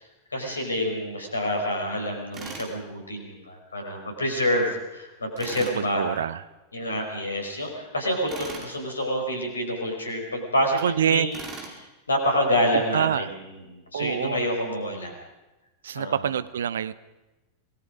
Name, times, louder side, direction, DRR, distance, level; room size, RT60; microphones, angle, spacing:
voice 1, 0.3-6.1 6.7-11.3 11.8-13.3 13.7-15.1 15.9-16.2, equal, 75° left, 3 dB, 5.3 m, -27 dB
Tools, 2.3-2.7 5.4-5.8 8.3-8.7 11.3-11.8, right 4 dB, 30° right, 4.6 m, -38 dB
voice 2, 5.6-6.4 10.7-11.3 12.7-13.3 13.9-14.5 15.8-16.9, right 9 dB, 65° right, 16 dB, 0.9 m, -26 dB
26.0 x 20.0 x 5.1 m, 1.0 s
figure-of-eight pair, 90°, 0 cm